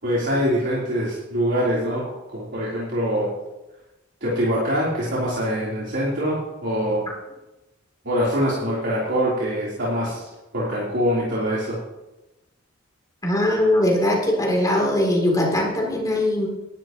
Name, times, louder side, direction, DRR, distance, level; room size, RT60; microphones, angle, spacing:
voice 1, 0.0-2.0 2.3-3.3 4.2-7.0 8.0-11.8, equal, 60° right, -8 dB, 4.0 m, -24 dB
voice 2, 13.2-16.5, left 1 dB, 20° left, -3 dB, 3.5 m, -20 dB
19.0 x 12.0 x 3.2 m, 0.99 s
head